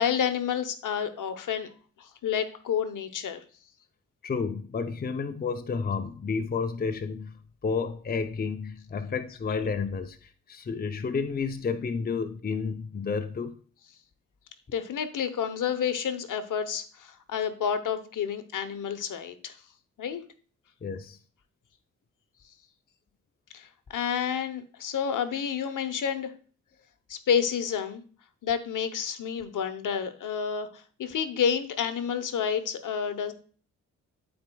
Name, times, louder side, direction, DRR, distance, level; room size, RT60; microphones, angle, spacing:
voice 1, 0.0-1.7 2.0-3.4 14.7-19.6 20.0-20.2 23.5-26.3 27.1-28.0 28.4-33.3, left 7 dB, 65° left, 0.9 m, -29 dB
voice 2, 4.2-13.6 20.8-21.2, left 5 dB, 25° left, 0.6 m, -31 dB
12.0 x 4.4 x 2.3 m
supercardioid pair, 60°, 34 cm